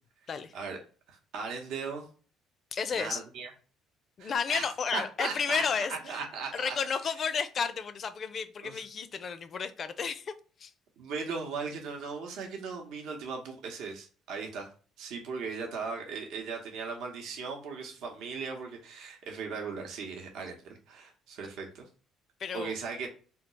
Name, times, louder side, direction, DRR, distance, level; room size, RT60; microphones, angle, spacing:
voice 1, 1.1-2.1 2.9-3.5 4.2-4.7 4.9-5.6 5.9-6.8 8.6-8.8 11.0-14.7 15.0-21.9 22.5-23.1, right 5 dB, 75° right, 0.7 m, -38 dB
voice 2, 2.7-3.2 4.2-6.2 6.5-10.3 10.6-10.7 22.4-22.7, left 6 dB, 45° left, 0.4 m, -32 dB
3.5 x 2.3 x 2.9 m
supercardioid pair, 80°, 0 cm